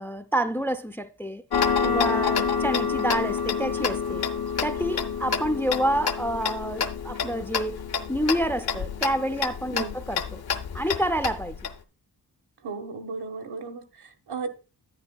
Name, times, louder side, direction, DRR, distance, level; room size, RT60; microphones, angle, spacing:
voice 1, 0.0-1.4 1.8-4.3 4.6-7.8 8.1-10.4 10.7-11.6, right 1 dB, 5° left, 0.3 m, -28 dB
Tick-tock, 1.5-11.7, left 6 dB, 65° left, 0.7 m, -28 dB
voice 2, 12.6-14.5, right 4 dB, 80° right, 1.4 m, -35 dB
11.0 x 9.2 x 2.3 m
wide cardioid pair, 180°, 40 cm